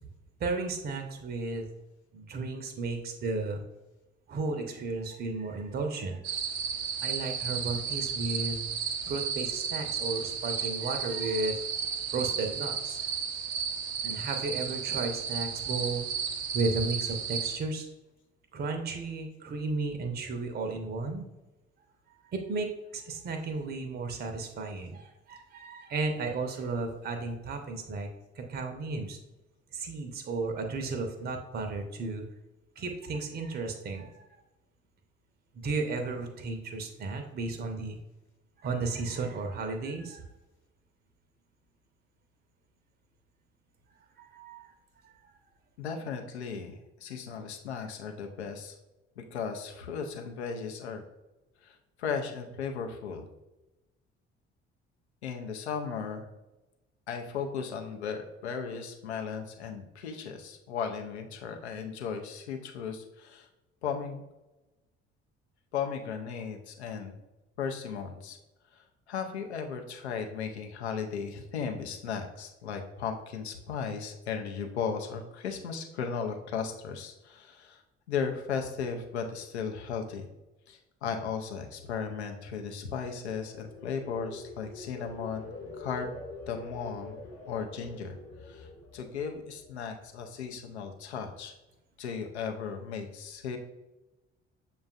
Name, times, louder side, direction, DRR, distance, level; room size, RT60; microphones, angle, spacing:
voice 1, 0.4-1.7 2.1-3.6 4.3-6.2 7.0-8.6 9.0-13.0 14.0-16.1 16.5-17.9 18.5-21.3 22.2-28.1 28.4-29.2 29.7-32.2 32.8-34.4 35.5-38.0 38.6-40.3 44.2-44.7 45.0-45.3, right 3 dB, 30° right, 4 dB, 0.6 m, -34 dB
sound 1, 6.2-17.6, right 7 dB, 70° right, 0.5 m, -33 dB
voice 2, 45.8-48.8 49.2-51.0 51.6-53.3 55.2-56.2 57.1-63.5 63.8-64.2 65.7-67.2 67.6-68.4 68.7-77.8 78.1-80.3 80.7-85.5 85.8-86.2 86.5-87.2 87.5-91.5 92.0-93.6, left 6 dB, 75° left, 4 dB, 0.5 m, -36 dB
sound 2, 82.8-90.0 90.4-90.8, left 3 dB, 45° left, 1.0 m, -46 dB
6.7 x 2.3 x 2.4 m, 1.0 s
figure-of-eight pair, 50°, 33 cm